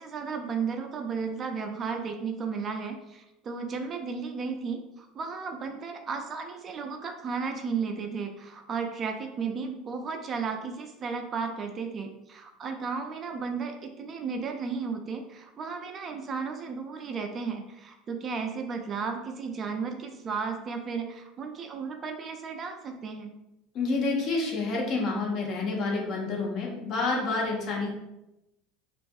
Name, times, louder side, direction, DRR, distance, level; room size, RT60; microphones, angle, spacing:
voice 1, 0.0-23.3, right 5 dB, 35° right, 4 dB, 0.3 m, -34 dB
voice 2, 23.7-27.9, left 3 dB, 45° left, -1 dB, 0.7 m, -28 dB
2.5 x 2.3 x 2.3 m, 0.91 s
hypercardioid pair, 75°, 0 cm